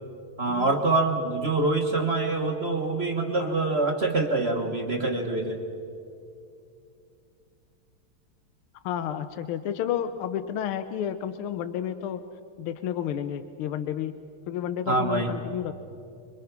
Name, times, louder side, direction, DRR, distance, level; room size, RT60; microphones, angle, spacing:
voice 1, 0.4-5.6 14.9-15.3, right 3 dB, 35° right, 3 dB, 1.2 m, -25 dB
voice 2, 8.8-12.2 12.6-14.1 14.5-15.7, left 10 dB, 85° left, 11 dB, 1.6 m, -31 dB
25.5 x 24.0 x 5.9 m, 2.6 s
omnidirectional pair, 2.3 m